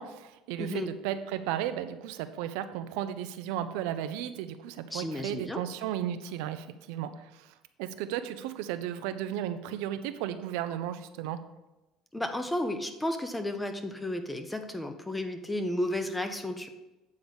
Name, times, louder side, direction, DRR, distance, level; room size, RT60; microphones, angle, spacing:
voice 1, 0.0-7.5 7.8-11.4, right 11 dB, 80° right, 10 dB, 0.6 m, -34 dB
voice 2, 4.9-5.6 12.1-16.7, left 1 dB, 10° left, 7 dB, 0.9 m, -33 dB
8.5 x 3.9 x 6.8 m, 1.0 s
supercardioid pair, 110°, 0 cm